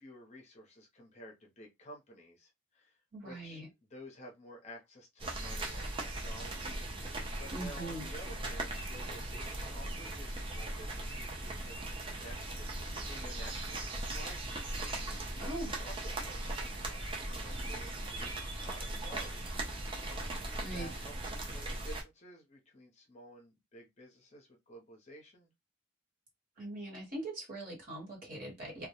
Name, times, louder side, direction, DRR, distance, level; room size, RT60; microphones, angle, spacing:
voice 1, 0.0-3.6 3.9-19.4 20.6-25.5, equal, 35° left, 0.6 m, -53 dB
voice 2, 3.1-3.7 7.5-8.1 15.3-15.7 20.6-20.9 26.6-28.9, right 1 dB, 40° right, 1.1 m, -41 dB
sound 1, 5.2-22.0, right 2 dB, 25° right, 0.4 m, -39 dB
2.2 x 2.0 x 2.8 m
head